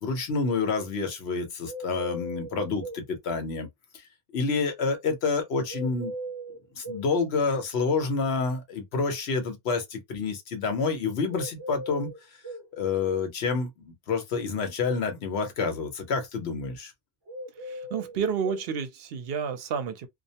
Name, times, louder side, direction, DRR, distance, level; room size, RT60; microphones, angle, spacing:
voice 1, 0.0-3.7 4.3-6.1 6.8-12.1 12.8-16.9, left 4 dB, 85° left, 1.0 m, -28 dB
sound 1, 1.6-3.1 5.7-7.1 11.3-12.7 17.3-18.6, equal, 45° right, 0.3 m, -38 dB
voice 2, 17.6-20.1, right 6 dB, 75° right, 0.8 m, -30 dB
2.4 x 2.0 x 2.7 m
omnidirectional pair, 1.0 m